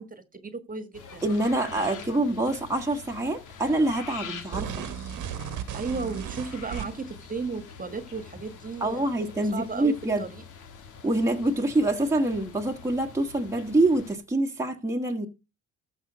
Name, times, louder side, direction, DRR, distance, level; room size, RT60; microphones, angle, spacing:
voice 1, 0.0-1.3 1.7-2.4 5.7-10.4, right 4 dB, 25° right, 1.6 m, -35 dB
sound 1, 0.9-14.1, left 6 dB, 80° left, 1.9 m, -45 dB
voice 2, 1.2-4.9 8.8-10.2 11.0-15.3, right 2 dB, 10° right, 1.5 m, -26 dB
sound 2, 4.5-7.2, right 9 dB, 80° right, 1.4 m, -35 dB
14.0 x 5.4 x 5.1 m
cardioid pair, 90°, 30 cm